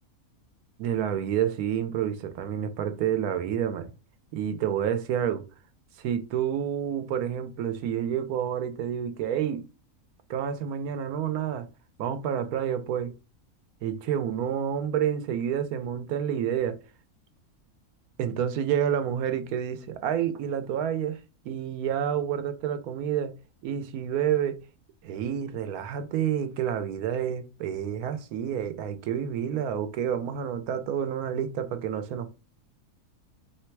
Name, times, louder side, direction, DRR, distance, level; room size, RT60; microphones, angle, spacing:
voice 1, 0.8-3.9 4.3-5.4 6.0-9.6 10.3-11.7 12.0-13.1 13.8-16.8 18.2-21.2 21.4-23.3 23.6-24.6 25.0-32.3, right 9 dB, 85° right, 1.2 m, -29 dB
3.3 x 3.2 x 4.5 m
omnidirectional pair, 1.5 m